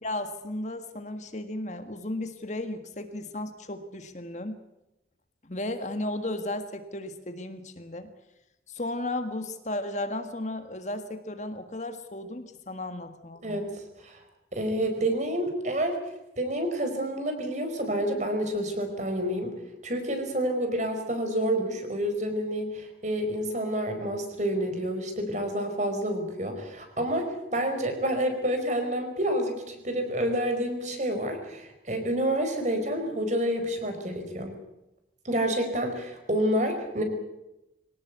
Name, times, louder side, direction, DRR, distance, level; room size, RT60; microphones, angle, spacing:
voice 1, 0.0-4.6 5.4-8.1 8.7-13.4, left 1 dB, 40° left, 8 dB, 1.7 m, -34 dB
voice 2, 14.5-16.0 16.4-19.5 19.8-34.5 35.2-37.0, right 1 dB, 40° right, 6 dB, 4.9 m, -28 dB
24.0 x 18.5 x 8.2 m, 0.90 s
head